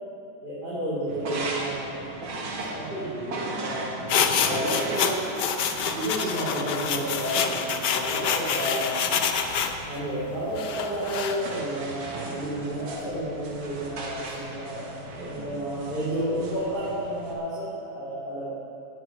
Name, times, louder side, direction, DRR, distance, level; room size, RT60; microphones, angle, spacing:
voice 1, 0.4-2.2 2.6-5.3 5.9-9.1 9.9-18.5, right 1 dB, 25° right, -10 dB, 3.6 m, -31 dB
sound 1, 1.1-17.3, right 2 dB, 70° right, 2.4 m, -38 dB
sound 2, 4.1-9.7 10.6-11.4, left 7 dB, 60° left, 1.3 m, -27 dB
16.5 x 9.1 x 6.3 m, 2.6 s
omnidirectional pair, 2.3 m